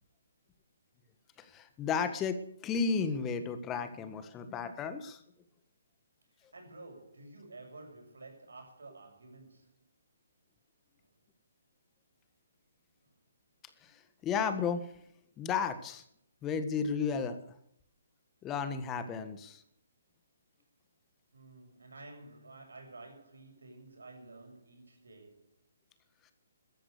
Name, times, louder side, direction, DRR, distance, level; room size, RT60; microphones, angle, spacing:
voice 1, 1.4-5.2 13.8-14.9 15.4-16.0 16.4-17.4 18.4-19.6, left 6 dB, 20° left, 1.6 m, -33 dB
voice 2, 6.5-9.9 11.0-11.1 13.0-13.1 21.3-25.5, right 2 dB, 85° right, 7.5 m, -51 dB
15.0 x 13.5 x 6.7 m
hypercardioid pair, 145°, 0 cm